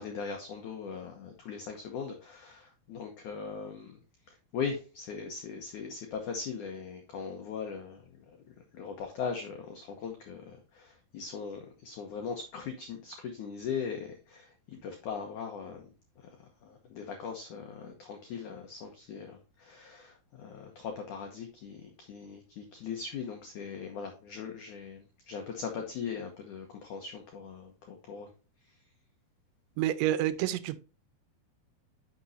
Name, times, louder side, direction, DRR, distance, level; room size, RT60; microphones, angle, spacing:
voice 1, 0.0-4.0 4.5-8.0 8.7-15.8 16.4-28.3, left 6 dB, 85° left, 1.7 m, -40 dB
voice 2, 29.8-30.8, right 13 dB, 90° right, 2.9 m, -28 dB
10.0 x 6.2 x 2.7 m
omnidirectional pair, 5.2 m